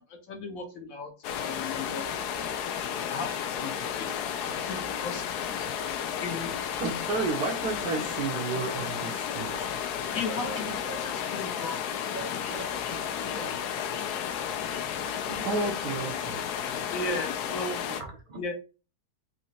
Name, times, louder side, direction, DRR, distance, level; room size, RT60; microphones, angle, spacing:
voice 1, 0.1-1.1 1.4-2.2 3.1-3.3 3.6-4.1 4.4-5.2 5.6-5.7 6.2-6.5 10.1-11.8 16.9-17.8 18.3-18.5, left 3 dB, 60° left, 1.3 m, -36 dB
sound 1, 1.2-18.0, left 8 dB, 80° left, 1.2 m, -32 dB
voice 2, 6.8-9.8 15.4-17.2, right 4 dB, 85° right, 1.4 m, -32 dB
voice 3, 10.1-11.1 12.1-13.6 15.3-15.4 18.0-18.4, right 4 dB, 60° right, 0.5 m, -42 dB
4.2 x 2.8 x 2.7 m
omnidirectional pair, 1.7 m